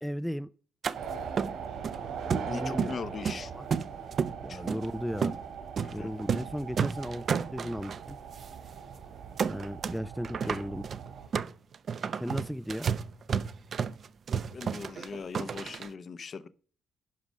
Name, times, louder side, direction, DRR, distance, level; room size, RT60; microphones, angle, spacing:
voice 1, 0.0-0.5 2.5-2.9 3.4-3.7 4.4-5.4 5.9-8.2 9.5-10.9 12.2-12.9, equal, ahead, 12 dB, 0.4 m, -35 dB
sound 1, 0.8-1.0 1.4-2.0 2.3-3.0 3.2-4.3 4.7-4.9 5.2-5.4 5.8-5.9 6.2-6.5 6.8-8.0 8.4-8.5 8.8-9.0 9.4-10.0 10.2-15.9, right 6 dB, 50° right, 0.6 m, -31 dB
sound 2, 0.9-11.3, right 7 dB, 80° right, 3.5 m, -41 dB
voice 2, 2.5-3.5 4.5-4.6 5.8-6.1 10.4-10.7 13.3-13.4 14.5-16.5, left 5 dB, 45° left, 13 dB, 0.7 m, -40 dB
11.5 x 5.2 x 6.2 m, 0.43 s
cardioid pair, 90°, 0 cm